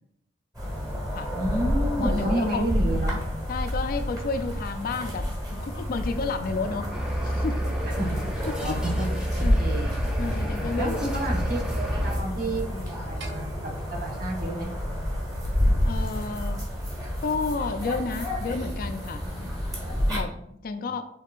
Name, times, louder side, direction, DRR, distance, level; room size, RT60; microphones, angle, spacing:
sound 1, 0.5-20.2, equal, 20° right, 1.3 m, -29 dB
voice 1, 1.3-3.2 8.0-8.2 8.6-9.1 9.6-9.9 10.8-14.7, right 1 dB, 55° right, 0 dB, 1.1 m, -30 dB
voice 2, 2.0-2.7 3.5-6.9 7.2-7.8 8.5-8.8 9.4-9.6 10.2-11.1 15.8-16.7 17.2-19.5 19.9-21.0, left 4 dB, 55° left, 8 dB, 0.4 m, -31 dB
sound 2, 6.9-12.2, equal, 5° right, 0.7 m, -29 dB
sound 3, 13.2-15.6, right 1 dB, 70° right, 0.6 m, -44 dB
5.3 x 3.6 x 2.4 m, 0.74 s
head